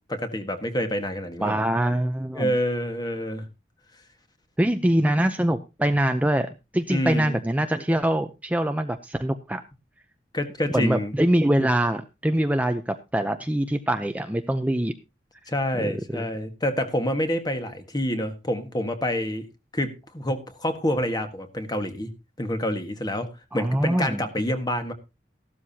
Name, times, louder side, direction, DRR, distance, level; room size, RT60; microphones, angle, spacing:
voice 1, 0.1-1.6 2.3-3.4 6.9-7.4 10.3-11.1 15.5-19.5 19.7-22.1 22.4-23.3 23.5-24.9, equal, 25° left, 7 dB, 1.5 m, -27 dB
voice 2, 1.4-2.5 4.6-9.6 10.7-14.9 15.7-16.3 23.5-24.2, right 1 dB, 10° right, 7 dB, 0.6 m, -24 dB
14.5 x 12.5 x 2.8 m, 0.27 s
head